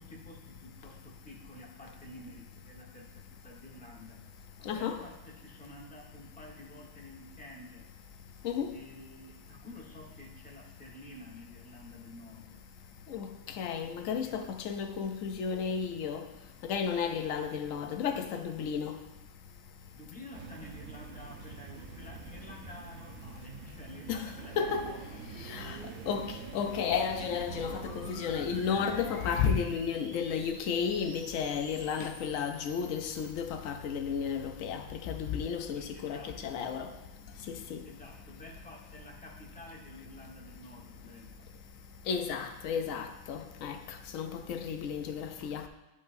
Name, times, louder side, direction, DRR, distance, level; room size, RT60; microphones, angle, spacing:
voice 1, 0.0-4.2 4.6-7.9 8.7-12.6 14.2-14.4 19.9-26.0 35.7-36.6 37.8-41.5, left 1 dB, 5° left, 1.0 m, -50 dB
voice 2, 4.6-5.0 8.4-8.7 13.1-16.2 16.6-19.0 24.1-25.0 25.4-25.8 26.1-36.9 37.5-37.8 42.1-45.7, left 6 dB, 90° left, 1.0 m, -33 dB
sound 1, 20.3-29.6, right 5 dB, 70° right, 1.0 m, -45 dB
sound 2, 21.9-33.3, right 1 dB, 35° right, 2.2 m, -52 dB
10.5 x 5.3 x 2.6 m
omnidirectional pair, 1.3 m